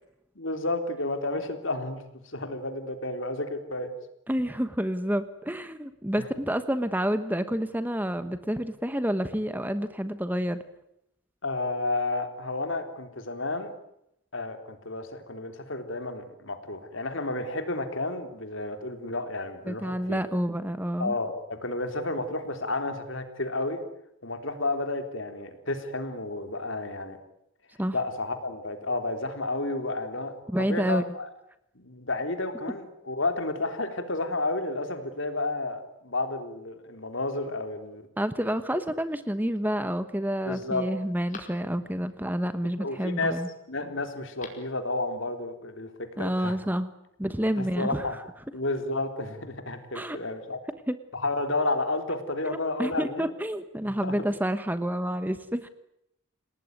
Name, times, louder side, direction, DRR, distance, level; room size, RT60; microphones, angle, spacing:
voice 1, 0.4-3.9 6.2-6.3 11.4-13.7 14.3-20.2 21.0-23.8 24.2-27.2 27.9-31.3 31.8-38.1 38.8-38.9 40.5-40.9 42.8-43.4 43.7-46.6 47.6-48.2 48.5-50.6 51.1-53.3 53.8-54.3, left 2 dB, 65° left, 7 dB, 3.7 m, -31 dB
voice 2, 4.3-10.6 19.7-21.2 27.8-27.9 30.5-31.0 38.2-43.5 46.2-46.9 47.2-48.1 49.9-50.2 50.9-51.0 52.4-55.7, equal, 10° right, 11 dB, 1.1 m, -29 dB
Telephone, 39.0-39.6 40.1-40.2 40.6-42.1 44.1-44.8 45.1-45.2, left 4 dB, 35° left, 5.0 m, -49 dB
29.0 x 19.0 x 9.6 m, 0.80 s
head